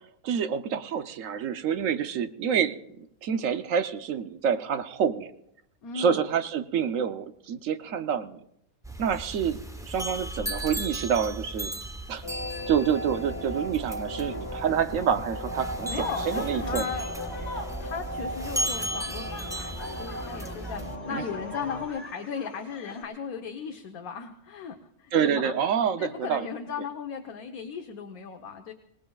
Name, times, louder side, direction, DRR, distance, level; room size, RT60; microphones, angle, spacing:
voice 1, 0.2-5.3 5.9-8.4 9.0-11.7 12.1-12.2 12.7-16.8 21.1-21.2 25.1-26.5, right 7 dB, 65° right, 10 dB, 1.1 m, -27 dB
voice 2, 5.8-6.2 15.9-17.1 17.5-25.6 26.0-28.7, left 6 dB, 75° left, 4 dB, 1.4 m, -37 dB
sound 1, 8.8-21.0, right 1 dB, 5° right, 0.5 m, -36 dB
sound 2, 12.2-21.9, equal, 25° left, 1.5 m, -37 dB
sound 3, 15.9-23.0, left 1 dB, 50° left, 3.4 m, -44 dB
25.5 x 19.0 x 2.3 m, 0.74 s
omnidirectional pair, 1.5 m